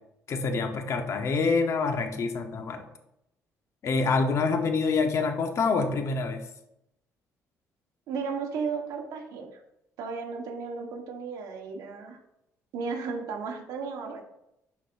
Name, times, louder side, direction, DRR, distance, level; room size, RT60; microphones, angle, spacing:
voice 1, 0.3-2.9 3.8-6.4, left 4 dB, 55° left, 5 dB, 1.0 m, -26 dB
voice 2, 8.1-9.6 10.0-12.2 12.7-14.2, right 5 dB, 80° right, 3 dB, 1.3 m, -34 dB
11.5 x 4.1 x 2.6 m, 0.81 s
cardioid pair, 105°, 6 cm